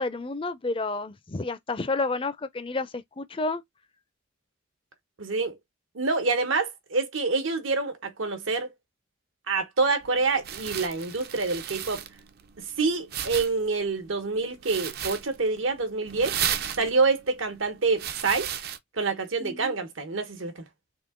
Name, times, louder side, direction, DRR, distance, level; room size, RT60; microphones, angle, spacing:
voice 1, 0.0-3.6 19.4-19.8, left 3 dB, 25° left, 0.4 m, -30 dB
voice 2, 5.2-5.5 5.9-8.7 9.5-12.0 12.6-16.4 16.8-18.5 19.0-20.6, right 4 dB, 80° right, 1.1 m, -27 dB
sound 1, 10.0-18.8, right 9 dB, 50° right, 0.5 m, -35 dB
3.7 x 2.8 x 3.6 m
head